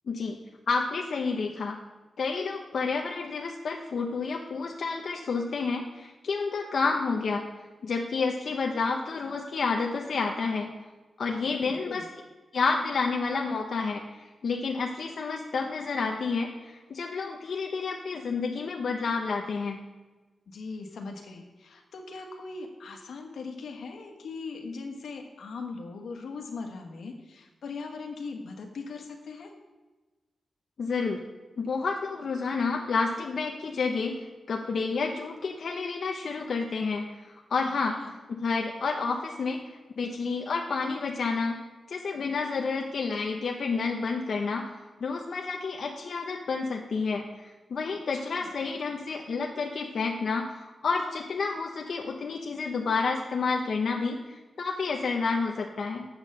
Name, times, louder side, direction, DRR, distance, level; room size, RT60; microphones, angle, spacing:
voice 1, 0.1-0.4 0.7-1.8 2.2-7.4 7.8-10.7 11.2-12.0 12.5-19.8 30.8-31.2 31.6-38.0 38.3-39.6 40.0-41.6 41.9-44.7 45.0-56.0, left 4 dB, 60° left, 1 dB, 0.8 m, -30 dB
voice 2, 11.4-12.1 20.5-29.5 37.9-38.1 48.1-48.5, left 4 dB, 85° left, 2 dB, 1.5 m, -40 dB
8.1 x 6.3 x 6.6 m, 1.2 s
wide cardioid pair, 145°, 0 cm